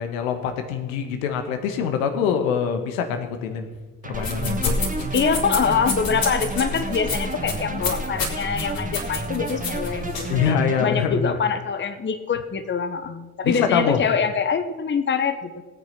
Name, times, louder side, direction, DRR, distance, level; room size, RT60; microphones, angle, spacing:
voice 1, 0.0-3.7 4.0-4.8 10.3-11.3 13.4-14.0, left 7 dB, 70° left, 7 dB, 1.6 m, -24 dB
sound 1, 4.0-10.9, right 2 dB, 20° right, 2.2 m, -32 dB
sound 2, 4.1-10.4, left 3 dB, 50° left, 3.6 m, -29 dB
voice 2, 5.1-15.6, left 6 dB, 25° left, 9 dB, 1.1 m, -25 dB
18.5 x 9.1 x 5.8 m, 1.3 s
figure-of-eight pair, 45°, 43 cm